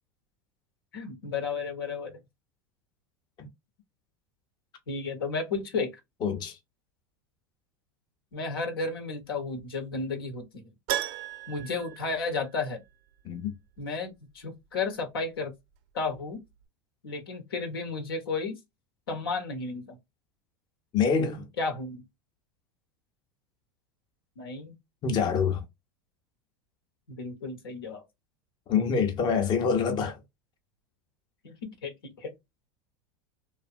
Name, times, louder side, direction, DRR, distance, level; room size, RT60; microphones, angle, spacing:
voice 1, 0.9-2.2 4.9-5.9 8.3-10.6 11.5-12.8 13.8-15.5 15.9-16.4 17.0-18.6 19.1-20.0 21.6-22.0 24.4-24.8 27.1-28.0 31.4-32.3, left 4 dB, 80° left, 1.0 m, -33 dB
voice 2, 6.2-6.5 13.3-13.5 20.9-21.5 25.0-25.6 28.7-30.1, left 6 dB, 35° left, 0.7 m, -25 dB
Keyboard (musical), 10.9-12.9 13.2-13.3 16.0-16.1 16.3-16.4, right 12 dB, 55° right, 0.6 m, -35 dB
2.7 x 2.4 x 2.4 m
hypercardioid pair, 90°, 12 cm